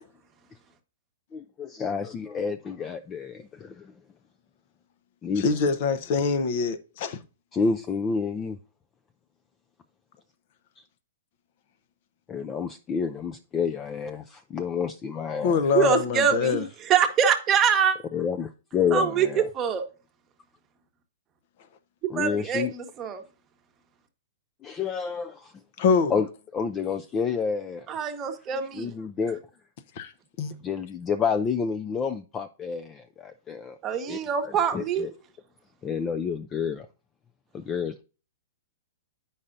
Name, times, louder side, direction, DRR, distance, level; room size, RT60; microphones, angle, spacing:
voice 1, 1.3-3.9 5.2-5.6 7.5-8.6 12.3-15.6 18.1-19.5 22.1-22.7 24.6-25.5 26.1-27.9 28.7-29.4 30.6-33.8 34.1-35.1 35.8-36.9 37.5-38.0, left 6 dB, 20° left, 0.4 m, -29 dB
voice 2, 5.4-7.2 15.4-16.6 25.8-26.1 30.0-30.1 30.4-30.5, left 5 dB, 50° left, 0.7 m, -24 dB
voice 3, 15.7-18.0 18.9-19.8 22.0-23.2 27.9-28.9 33.8-35.1, right 7 dB, 25° right, 1.0 m, -24 dB
8.5 x 5.5 x 2.5 m
hypercardioid pair, 135°, 0 cm